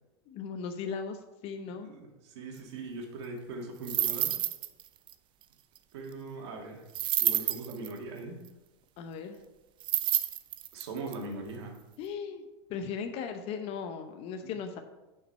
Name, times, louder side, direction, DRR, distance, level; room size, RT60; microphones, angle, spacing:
voice 1, 0.3-1.9 9.0-9.4 12.0-14.8, left 6 dB, 45° left, 6 dB, 0.8 m, -37 dB
voice 2, 1.8-4.4 5.9-6.9 7.2-8.4 10.7-11.8 14.4-14.5, right 3 dB, 70° right, 1 dB, 2.1 m, -40 dB
sound 1, 3.8-4.8 5.1-5.2 6.9-7.9 9.8-11.1, right 13 dB, 35° right, 0.5 m, -29 dB
7.3 x 5.9 x 5.5 m, 1.0 s
supercardioid pair, 125°, 14 cm